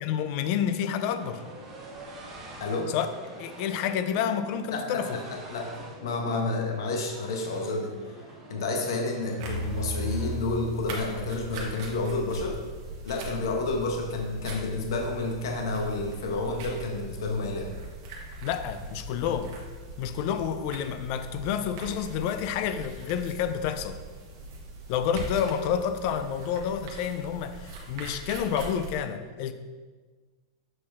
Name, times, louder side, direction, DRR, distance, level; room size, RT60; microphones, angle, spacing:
voice 1, 0.0-1.4 2.9-3.1 3.4-5.2 18.4-19.5 20.0-24.0 24.9-29.5, left 8 dB, 35° left, 10 dB, 0.4 m, -29 dB
sound 1, 0.8-10.4, right 2 dB, 20° right, 1.0 m, -46 dB
voice 2, 2.6-2.9 4.7-5.2 5.5-5.7 6.0-8.2 8.5-12.6 13.0-17.7, left 3 dB, 65° left, 1 dB, 1.1 m, -30 dB
sound 2, 9.4-29.0, right 2 dB, 40° right, 1.3 m, -40 dB
7.6 x 4.3 x 3.6 m, 1.4 s
supercardioid pair, 170°, 2 cm